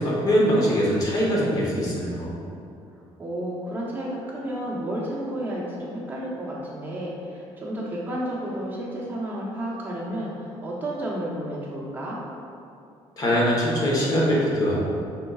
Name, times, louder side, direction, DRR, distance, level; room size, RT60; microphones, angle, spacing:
voice 1, 0.0-2.4 13.2-14.8, equal, 35° left, -5 dB, 1.1 m, -22 dB
voice 2, 3.2-12.2, right 1 dB, 20° right, -6 dB, 1.0 m, -31 dB
5.5 x 3.8 x 2.4 m, 2.6 s
cardioid pair, 145°, 11 cm